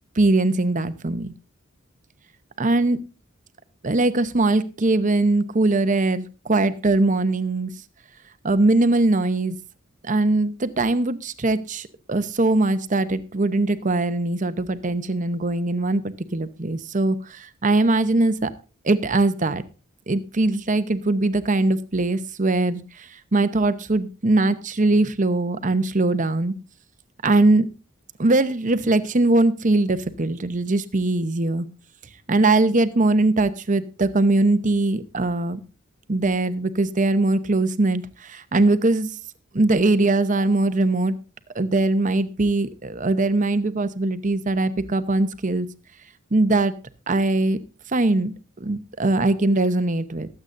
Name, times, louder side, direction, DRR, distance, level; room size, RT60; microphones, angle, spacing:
voice 1, 0.1-1.3 2.6-3.0 3.8-7.7 8.4-9.6 10.0-18.5 18.8-19.6 20.1-26.6 27.2-27.7 28.2-31.7 32.3-35.6 36.1-39.1 39.5-41.1 41.5-45.7 46.3-46.7 47.1-47.6 47.9-50.3, right 2 dB, 35° right, 12 dB, 0.8 m, -21 dB
23.0 x 8.0 x 2.6 m, 0.31 s
head